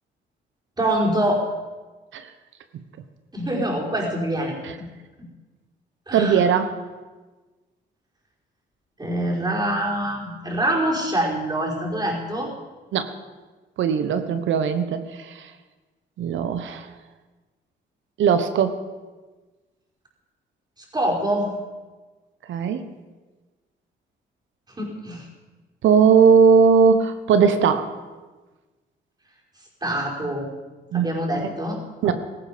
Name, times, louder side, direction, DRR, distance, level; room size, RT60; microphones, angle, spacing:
voice 1, 0.8-1.5 3.3-4.9 6.1-6.5 9.0-12.5 20.9-21.5 24.8-25.3 29.8-30.5 30.9-32.1, right 1 dB, 20° right, -2 dB, 5.2 m, -25 dB
voice 2, 6.1-6.7 12.9-13.1 13.8-15.5 16.2-16.9 18.2-18.8 22.5-22.8 25.8-27.9 30.9-31.1 31.4-31.5 32.0-32.1, right 6 dB, 75° right, 10 dB, 1.2 m, -19 dB
17.5 x 14.5 x 5.2 m, 1.3 s
cardioid pair, 90°, 20 cm